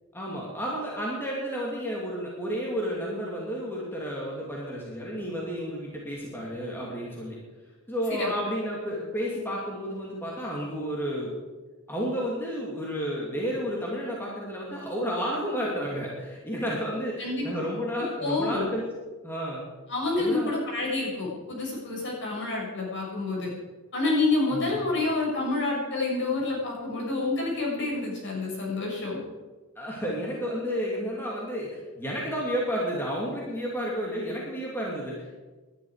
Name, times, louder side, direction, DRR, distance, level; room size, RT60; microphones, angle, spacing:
voice 1, 0.1-7.4 7.9-11.3 11.9-18.9 19.2-19.6 20.2-20.5 24.5-24.7 29.8-35.4, equal, 10° left, -4 dB, 2.7 m, -31 dB
voice 2, 17.2-17.6 18.2-18.7 19.9-23.5 23.9-29.2, left 2 dB, 55° left, -3 dB, 6.6 m, -28 dB
19.5 x 11.5 x 5.0 m, 1.3 s
head